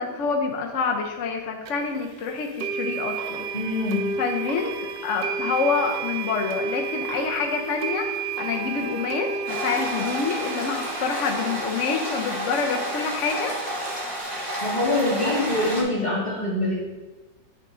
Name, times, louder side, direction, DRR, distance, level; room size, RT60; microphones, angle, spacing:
voice 1, 0.0-3.4 4.2-4.7 5.0-13.5 15.2-15.4, left 5 dB, 60° left, 2 dB, 0.8 m, -27 dB
sound 1, 1.7-1.8 2.6-14.2, right 5 dB, 75° right, 1.3 m, -32 dB
voice 2, 3.5-4.1 14.6-16.7, left 2 dB, 25° left, -6 dB, 1.9 m, -24 dB
sound 2, 9.5-15.8, equal, 25° right, 1.4 m, -30 dB
9.2 x 5.2 x 3.8 m, 1.2 s
omnidirectional pair, 1.9 m